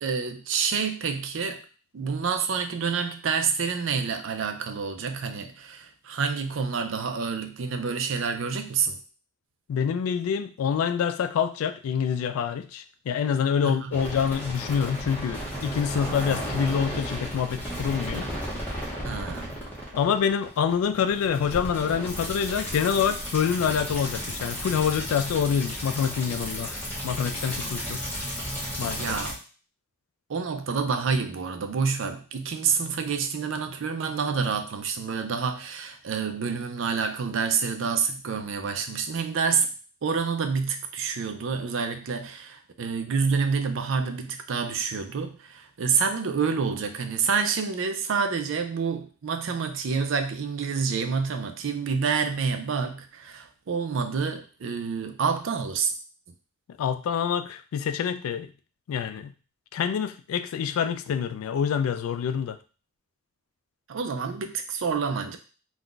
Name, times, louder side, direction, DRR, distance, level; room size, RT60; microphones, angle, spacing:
voice 1, 0.0-1.6 1.9-9.0 13.6-14.0 19.0-19.5 28.8-29.4 30.3-39.7 40.0-55.9 63.9-65.4, right 5 dB, 65° right, 0.4 m, -28 dB
voice 2, 9.7-18.3 19.9-26.8 27.0-28.0 28.8-29.0 56.8-58.5 58.9-59.3 59.7-62.6, left 7 dB, 85° left, 0.3 m, -26 dB
sound 1, 13.9-29.3, equal, 10° left, 0.7 m, -34 dB
2.4 x 2.2 x 3.7 m
head